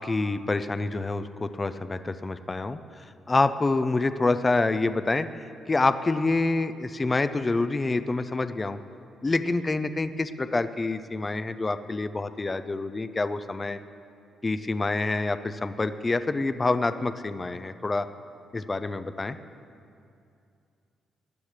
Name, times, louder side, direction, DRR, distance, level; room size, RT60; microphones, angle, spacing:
voice 1, 0.0-2.8 3.3-8.8 9.2-13.8 14.4-18.1 18.5-19.4, left 3 dB, 20° left, 11 dB, 0.4 m, -27 dB
20.0 x 11.5 x 3.3 m, 2.5 s
cardioid pair, 125°, 0 cm